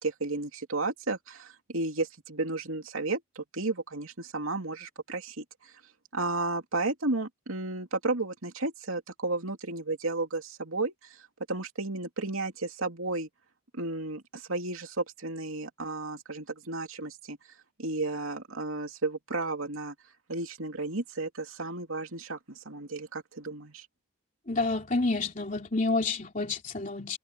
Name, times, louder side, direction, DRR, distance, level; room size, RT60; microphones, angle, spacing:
voice 1, 0.0-5.7 6.1-11.2 11.5-13.3 13.7-17.4 17.8-19.9 20.3-23.9, right 3 dB, 80° right, 2.8 m, -33 dB
voice 2, 24.5-27.2, left 3 dB, 35° left, 3.4 m, -29 dB
head